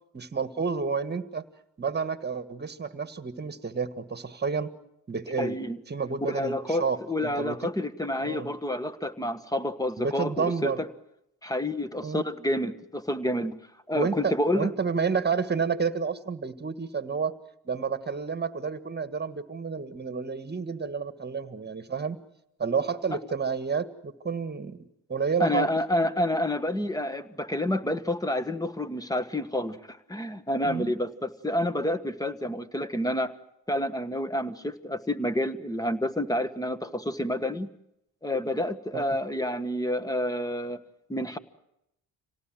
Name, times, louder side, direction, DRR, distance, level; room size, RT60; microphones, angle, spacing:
voice 1, 0.1-1.4 1.8-4.7 5.1-5.6 5.9-7.6 8.2-8.5 10.0-10.8 12.0-12.2 13.9-17.3 17.7-22.2 22.6-25.7 30.7-30.9 38.9-39.2, right 5 dB, 25° right, 11 dB, 1.7 m, -30 dB
voice 2, 5.4-5.8 6.2-10.9 11.4-13.6 13.9-14.7 25.4-33.3 33.7-37.7 38.2-40.8 41.1-41.4, left 1 dB, 10° left, 13 dB, 1.4 m, -29 dB
26.5 x 18.0 x 7.7 m, 0.83 s
supercardioid pair, 80°, 38 cm